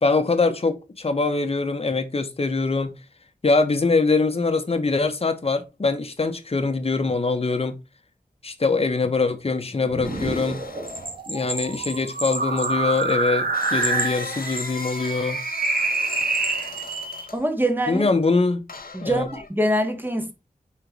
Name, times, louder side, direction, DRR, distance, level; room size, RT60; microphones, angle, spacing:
voice 1, 0.0-2.9 3.4-7.8 8.4-10.6 11.3-15.4 17.9-18.6 19.0-19.3, left 3 dB, 40° left, 1.0 m, -23 dB
sound 1, 9.8-17.2, right 3 dB, 85° right, 1.8 m, -27 dB
sound 2, 10.0-11.1 13.2-17.4 18.7-19.5, left 4 dB, 75° left, 1.4 m, -38 dB
Bell, 10.9-13.3 13.6-15.1 15.6-17.0, right 2 dB, 35° right, 1.6 m, -33 dB
voice 2, 17.3-18.0 18.9-20.3, right 1 dB, 15° right, 1.3 m, -24 dB
5.6 x 4.0 x 4.6 m
wide cardioid pair, 95°, 15 cm